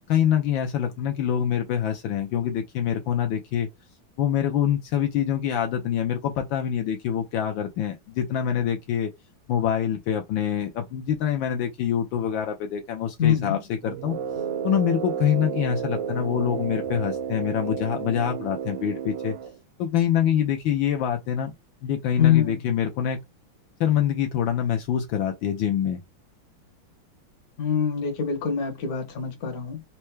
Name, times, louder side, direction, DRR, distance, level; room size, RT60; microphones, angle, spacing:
voice 1, 0.1-3.7 4.2-9.1 9.5-14.2 14.6-19.3 19.8-21.5 21.8-23.2 23.8-26.0, left 9 dB, 75° left, 1.3 m, -25 dB
voice 2, 13.2-13.6 22.2-22.6 27.6-29.8, left 9 dB, 55° left, 1.2 m, -24 dB
sound 1, 13.8-17.5, right 6 dB, 55° right, 0.9 m, -39 dB
Brass instrument, 14.0-19.6, right 8 dB, 75° right, 1.2 m, -32 dB
4.4 x 2.1 x 3.1 m
omnidirectional pair, 2.2 m